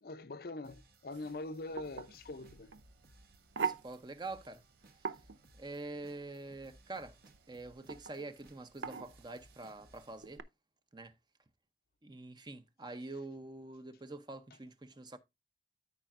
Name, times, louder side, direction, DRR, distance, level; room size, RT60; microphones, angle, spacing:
voice 1, 0.0-2.7, left 2 dB, 55° left, 0.6 m, -43 dB
sound 1, 0.6-10.2, right 2 dB, 55° right, 1.3 m, -64 dB
sound 2, 1.1-10.4, right 6 dB, 80° right, 0.6 m, -44 dB
voice 2, 3.6-4.6 5.6-7.2 7.5-10.4 10.9-11.1 12.0-15.2, right 2 dB, 25° right, 0.7 m, -45 dB
13.5 x 5.0 x 2.5 m
head